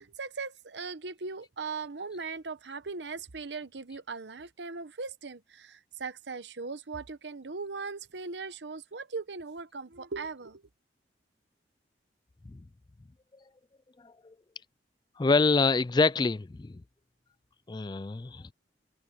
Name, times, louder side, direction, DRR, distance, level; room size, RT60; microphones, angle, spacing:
voice 1, 0.0-10.6, right 4 dB, 80° right, 1.0 m, -39 dB
voice 2, 15.2-16.7 17.7-18.5, left 3 dB, 25° left, 0.4 m, -26 dB
head